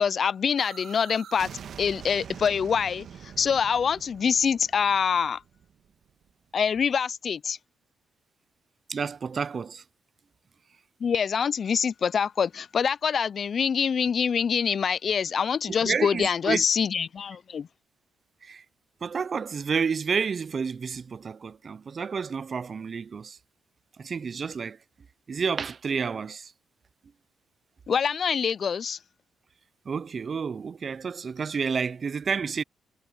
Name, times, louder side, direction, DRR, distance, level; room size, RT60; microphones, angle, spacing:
voice 1, 0.0-1.5 1.8-5.4 6.5-7.6 11.0-17.7 27.9-29.0, left 7 dB, 55° left, 0.3 m, -25 dB
sound 1, 0.6-6.3, right 8 dB, 65° right, 1.8 m, -45 dB
voice 2, 8.9-9.8 15.7-16.6 18.4-18.6 19.0-23.4 24.0-24.8 25.3-26.5 29.9-32.6, right 6 dB, 45° right, 0.5 m, -30 dB
supercardioid pair, 65°, 0 cm